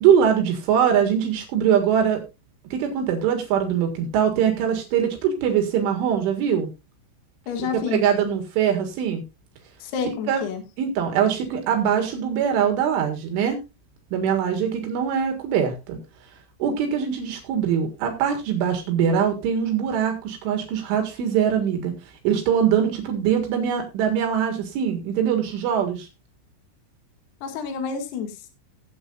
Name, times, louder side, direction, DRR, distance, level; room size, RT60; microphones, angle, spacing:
voice 1, 0.0-2.2 2.7-6.7 7.9-9.2 10.3-10.4 10.8-13.6 14.1-16.0 16.6-21.9 22.2-26.1, right 8 dB, 75° right, 5 dB, 4.1 m, -22 dB
voice 2, 7.5-8.0 9.8-10.6 27.4-28.5, left 6 dB, 60° left, 4 dB, 3.8 m, -29 dB
18.0 x 8.6 x 2.6 m, 0.26 s
omnidirectional pair, 5.8 m